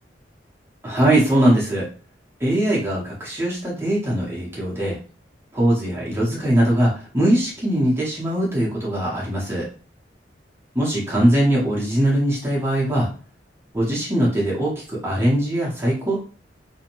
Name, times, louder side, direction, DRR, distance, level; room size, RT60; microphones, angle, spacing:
voice 1, 0.8-1.9 2.4-5.0 5.5-9.7 10.7-13.1 13.7-16.2, right 1 dB, 15° right, -5 dB, 0.7 m, -21 dB
2.5 x 2.2 x 2.9 m, 0.38 s
head